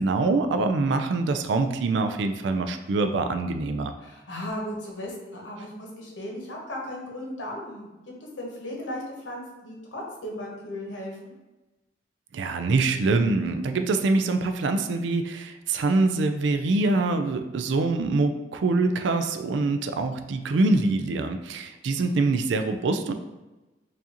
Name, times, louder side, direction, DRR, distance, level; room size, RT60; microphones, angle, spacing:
voice 1, 0.0-3.9 12.3-23.1, right 3 dB, 75° right, 8 dB, 0.4 m, -24 dB
voice 2, 4.0-11.3, left 1 dB, 85° left, -2 dB, 1.0 m, -36 dB
4.7 x 2.6 x 2.8 m, 1.1 s
head